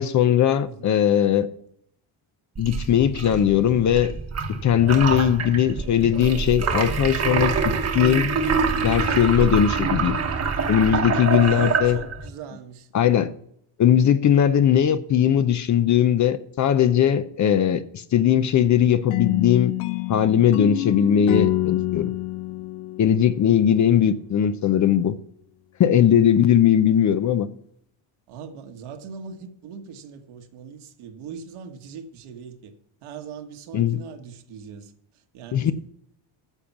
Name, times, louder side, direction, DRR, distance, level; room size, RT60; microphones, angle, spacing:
voice 1, 0.0-1.5 2.6-4.1 4.6-7.5 7.9-8.3 8.8-10.2 10.7-12.0 12.9-13.3 13.8-19.7 20.1-22.1 23.0-25.2 25.8-27.5 33.7-34.0 35.5-35.7, left 9 dB, 35° left, 0.6 m, -19 dB
voice 2, 0.6-1.0 11.3-13.4 28.3-32.7 33.0-35.7, right 6 dB, 75° right, 1.7 m, -41 dB
sound 1, 2.6-12.3, right 5 dB, 30° right, 1.2 m, -25 dB
sound 2, 19.1-24.0, left 17 dB, 80° left, 0.8 m, -27 dB
10.0 x 7.1 x 5.9 m
cardioid pair, 135°, 50 cm